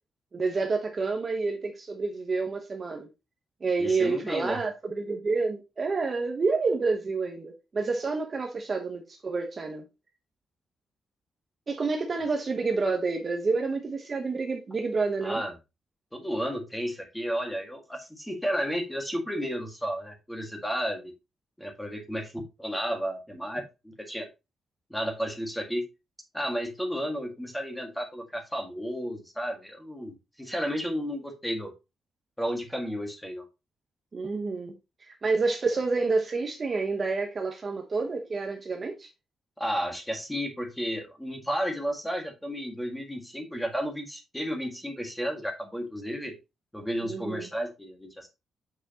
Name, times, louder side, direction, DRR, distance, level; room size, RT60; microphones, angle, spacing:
voice 1, 0.3-3.1 3.6-9.8 11.7-15.4 34.1-34.8 35.0-39.1 47.0-47.5, right 4 dB, 30° right, 1.0 m, -29 dB
voice 2, 3.8-4.6 15.2-15.5 16.1-21.1 21.6-23.6 24.0-24.3 24.9-25.8 26.3-31.7 32.4-33.4 39.6-46.3 46.7-48.3, equal, 5° left, 1.8 m, -32 dB
7.9 x 6.1 x 2.8 m
wide cardioid pair, 175°, 0 cm